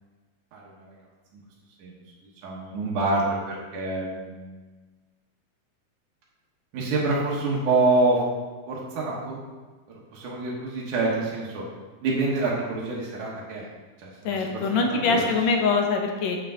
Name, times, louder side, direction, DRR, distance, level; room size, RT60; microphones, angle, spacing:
voice 1, 0.5-0.9 1.3-1.4 1.8-2.0 2.4-4.4 6.7-8.2 8.7-9.4 9.9-11.6 12.0-13.7 14.0-15.2, right 2 dB, 75° right, -5 dB, 2.8 m, -26 dB
voice 2, 14.3-16.4, left 4 dB, 70° left, 3 dB, 2.0 m, -23 dB
8.5 x 7.6 x 3.8 m, 1.3 s
omnidirectional pair, 3.6 m